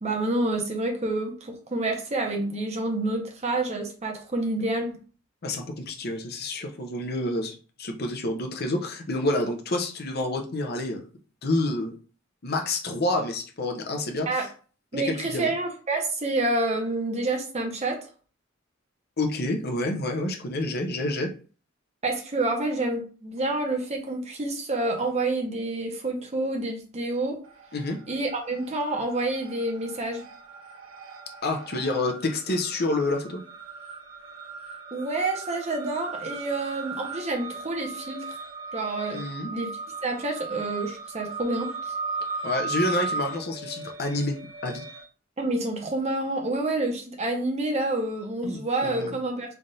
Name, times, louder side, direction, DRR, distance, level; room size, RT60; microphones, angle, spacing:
voice 1, 0.0-4.9 14.3-14.5 14.9-18.1 22.0-27.4 28.1-30.2 34.9-38.3 38.7-39.2 39.5-39.7 40.0-41.9 45.4-49.5, right 2 dB, 35° right, 3 dB, 0.8 m, -28 dB
voice 2, 5.4-11.0 11.4-11.9 12.4-14.5 14.9-15.5 19.2-21.3 27.7-28.0 31.4-33.4 39.1-39.5 42.4-44.8 48.4-49.1, left 2 dB, 50° left, 4 dB, 0.7 m, -28 dB
sound 1, 27.5-28.1 28.4-45.0, right 4 dB, 85° right, 0.6 m, -37 dB
3.4 x 2.5 x 4.0 m, 0.38 s
head